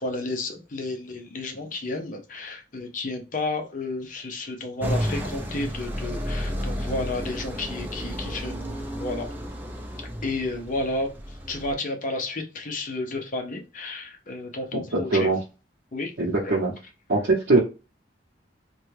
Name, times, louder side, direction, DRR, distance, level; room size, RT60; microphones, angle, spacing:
voice 1, 0.0-8.6 9.0-9.3 10.2-15.3 15.9-16.1 16.4-16.7, left 2 dB, 50° left, 4 dB, 0.6 m, -32 dB
sound 1, 4.8-11.7, equal, 10° right, 0.5 m, -32 dB
voice 2, 14.7-15.4 16.2-16.7 17.1-17.6, right 3 dB, 75° right, -4 dB, 0.7 m, -22 dB
3.2 x 2.2 x 3.1 m, 0.31 s
head